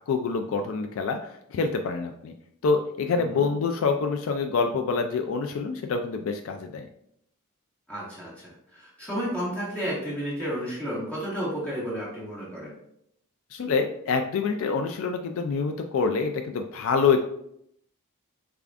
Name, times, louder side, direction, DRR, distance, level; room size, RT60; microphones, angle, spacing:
voice 1, 0.0-2.3 2.6-6.9 13.5-17.2, left 5 dB, 60° left, 5 dB, 0.3 m, -26 dB
voice 2, 3.1-3.5 7.9-12.7, equal, 5° left, -8 dB, 1.6 m, -32 dB
6.6 x 2.4 x 2.4 m, 0.73 s
head